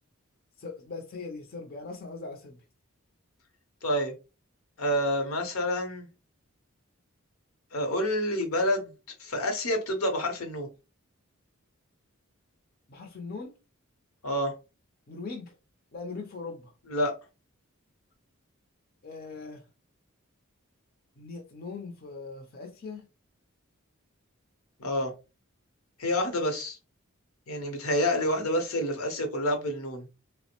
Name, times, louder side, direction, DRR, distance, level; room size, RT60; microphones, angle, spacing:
voice 1, 0.6-2.6 12.9-13.5 15.1-15.5 15.9-16.7 19.0-19.6 21.2-23.1, left 4 dB, 45° left, 0.5 m, -40 dB
voice 2, 3.8-4.1 4.8-6.1 7.7-8.9 9.2-10.7 14.2-14.5 16.9-17.2 24.8-25.1 26.0-26.8 27.5-30.1, left 1 dB, 80° left, 0.8 m, -28 dB
3.3 x 2.0 x 2.9 m
head